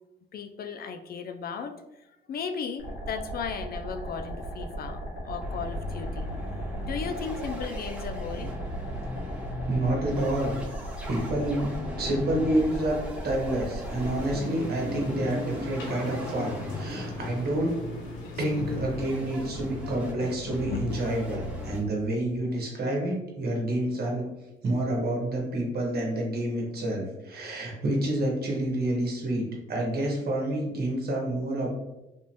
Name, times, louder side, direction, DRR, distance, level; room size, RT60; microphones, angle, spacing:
voice 1, 0.3-5.0 5.2-6.3 6.9-8.5 18.2-18.4 20.7-20.8, left 6 dB, 50° left, 7 dB, 0.4 m, -36 dB
sound 1, 2.8-14.4, right 1 dB, 65° left, 1.4 m, -37 dB
sound 2, 3.7-4.2 4.5-4.6 4.9-5.0 5.4-21.8, left 1 dB, 5° right, 1.4 m, -38 dB
voice 2, 9.7-10.6 11.1-13.0 13.2-17.7 18.4-24.2 24.6-31.7, right 1 dB, 50° right, -1 dB, 1.3 m, -28 dB
sound 3, 13.9-19.0, left 1 dB, 90° left, 0.8 m, -38 dB
3.4 x 3.0 x 2.8 m, 0.95 s
cardioid pair, 90°, 20 cm